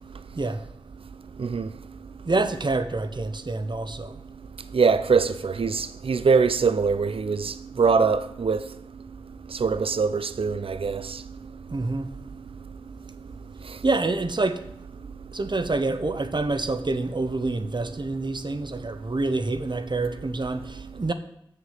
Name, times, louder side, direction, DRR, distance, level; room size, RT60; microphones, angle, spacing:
voice 1, 1.4-1.7 4.7-8.6 9.5-11.2 13.7-13.8, right 5 dB, 85° right, 0.4 m, -23 dB
voice 2, 2.3-4.2 11.7-12.1 13.8-14.6 15.3-21.1, right 2 dB, 55° right, 0.7 m, -27 dB
7.2 x 6.6 x 6.5 m
wide cardioid pair, 40°, 9 cm